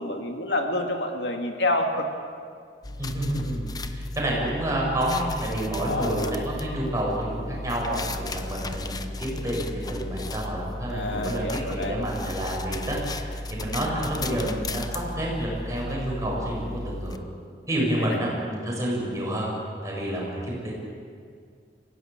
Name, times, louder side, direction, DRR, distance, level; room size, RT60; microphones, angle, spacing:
voice 1, 0.0-2.1 5.9-6.3 10.9-12.0 18.0-18.2, left 1 dB, 80° left, 3 dB, 2.3 m, -28 dB
sound 1, 2.8-17.2, left 2 dB, 20° left, 0.9 m, -35 dB
voice 2, 3.0-11.4 11.7-17.2 17.7-19.5 19.8-20.7, right 1 dB, 20° right, -4 dB, 7.9 m, -29 dB
25.5 x 17.0 x 8.9 m, 2.2 s
head